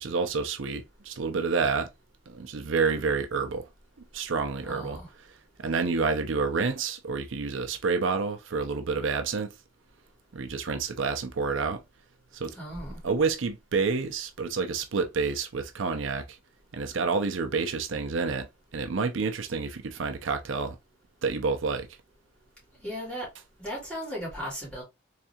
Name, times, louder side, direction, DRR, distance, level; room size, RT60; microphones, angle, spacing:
voice 1, 0.0-1.9 2.3-3.7 4.1-5.0 5.6-9.5 10.3-11.8 12.3-12.5 13.0-16.4 16.7-18.5 18.7-20.8 21.2-21.9, right 4 dB, 80° right, 0.6 m, -28 dB
voice 2, 4.6-5.0 12.5-13.0 22.8-23.3 23.6-24.8, equal, 5° left, 2.2 m, -36 dB
3.5 x 3.3 x 2.8 m
head